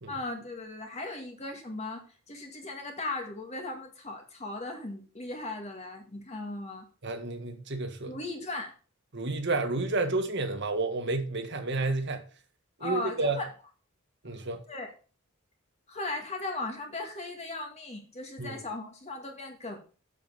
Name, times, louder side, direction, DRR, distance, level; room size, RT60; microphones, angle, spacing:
voice 1, 0.1-6.9 8.1-8.8 12.8-13.5 14.7-14.9 15.9-19.8, left 2 dB, 30° left, 1.9 m, -37 dB
voice 2, 7.0-8.2 9.1-12.2 12.8-13.4 14.2-14.6 18.4-18.6, right 3 dB, 55° right, 1.6 m, -30 dB
7.5 x 6.9 x 5.5 m
head